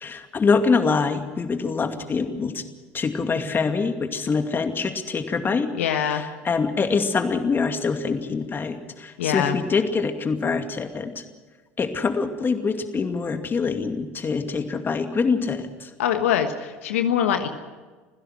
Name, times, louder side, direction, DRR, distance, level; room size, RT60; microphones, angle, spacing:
voice 1, 0.0-2.6 2.9-11.2 11.8-15.9, left 4 dB, 30° left, 7 dB, 2.3 m, -25 dB
voice 2, 5.8-6.2 9.2-9.6 16.0-17.5, left 9 dB, 80° left, 7 dB, 1.4 m, -23 dB
26.0 x 16.0 x 6.4 m, 1.4 s
hypercardioid pair, 75°, 7 cm